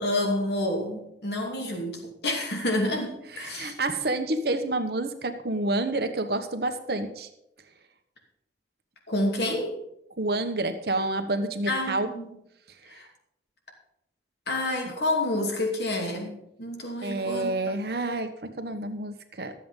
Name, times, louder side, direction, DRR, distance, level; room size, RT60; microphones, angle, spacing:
voice 1, 0.0-3.7 9.1-9.8 11.7-12.3 12.9-13.1 14.5-16.3 16.6-17.5, left 1 dB, 70° left, 1 dB, 2.6 m, -28 dB
voice 2, 3.3-7.3 10.2-12.1 17.0-19.5, right 2 dB, 60° right, 7 dB, 1.1 m, -29 dB
13.0 x 7.8 x 5.3 m, 0.80 s
head